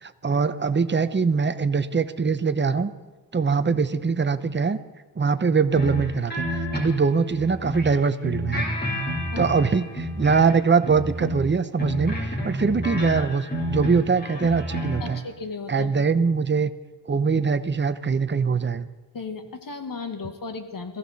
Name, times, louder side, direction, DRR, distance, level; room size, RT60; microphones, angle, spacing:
voice 1, 0.0-2.9 3.3-4.8 5.2-8.6 9.4-15.2 15.7-16.7 17.1-18.9, right 5 dB, 30° right, 11 dB, 0.8 m, -23 dB
sound 1, 5.7-7.9 8.2-10.6 10.8-15.2, equal, 25° left, 3.4 m, -30 dB
voice 2, 15.0-16.1 19.1-21.0, left 4 dB, 55° left, 7 dB, 1.6 m, -35 dB
22.0 x 15.0 x 4.1 m, 1.3 s
wide cardioid pair, 120°, 39 cm